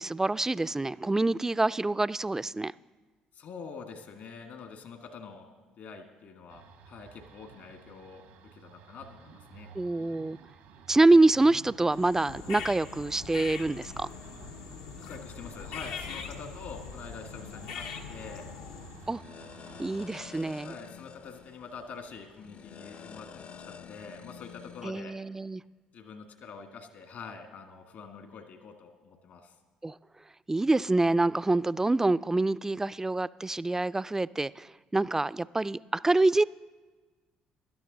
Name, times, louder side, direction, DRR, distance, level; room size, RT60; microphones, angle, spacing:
voice 1, 0.0-2.7 9.8-10.4 10.9-14.1 19.1-19.2 19.8-20.7 24.8-25.6 29.8-29.9 30.5-36.4, right 2 dB, 15° right, 17 dB, 0.3 m, -26 dB
voice 2, 3.3-5.5 5.8-8.2 8.5-9.7 15.1-18.5 20.6-25.2 25.9-29.5, left 5 dB, 65° left, 5 dB, 1.7 m, -45 dB
sound 1, 6.5-20.2, right 6 dB, 85° right, 1.2 m, -53 dB
sound 2, 11.9-19.2, left 6 dB, 85° left, 0.8 m, -42 dB
sound 3, 18.0-24.9, left 7 dB, 50° left, 0.5 m, -49 dB
17.0 x 12.0 x 3.9 m, 1.3 s
hypercardioid pair, 55°, 3 cm